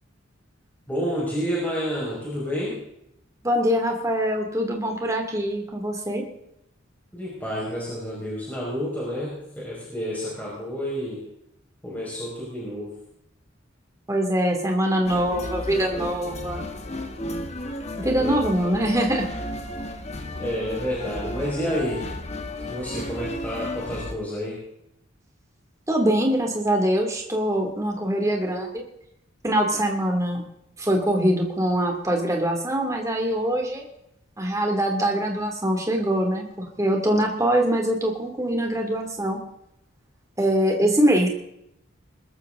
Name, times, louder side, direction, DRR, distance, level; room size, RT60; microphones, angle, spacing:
voice 1, 0.9-2.8 7.1-11.2 11.8-12.9 18.1-18.4 20.4-22.0 22.7-24.6, equal, 10° left, -6 dB, 5.2 m, -29 dB
voice 2, 3.4-6.2 14.1-16.6 18.0-19.3 25.9-28.8 29.4-30.4 30.8-33.8 34.4-39.4 40.4-41.3, right 1 dB, 15° right, 2 dB, 2.6 m, -23 dB
sound 1, 15.0-24.1, left 1 dB, 30° left, 1.5 m, -33 dB
21.5 x 13.5 x 3.8 m, 0.79 s
head